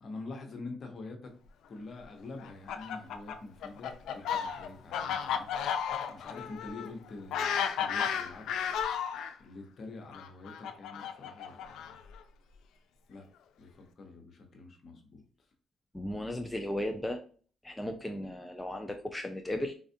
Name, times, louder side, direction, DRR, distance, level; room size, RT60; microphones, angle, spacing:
voice 1, 0.0-1.3 1.6-5.5 6.1-8.8 9.4-12.0 13.1-13.3 13.6-15.2, left 3 dB, 50° left, 4 dB, 0.9 m, -46 dB
Fowl, 2.4-9.3 10.1-12.2, left 8 dB, 80° left, 0.4 m, -34 dB
voice 2, 15.9-17.2 17.6-19.7, left 1 dB, 10° left, 3 dB, 0.4 m, -35 dB
4.2 x 2.4 x 2.7 m, 0.42 s
cardioid pair, 90°, 0 cm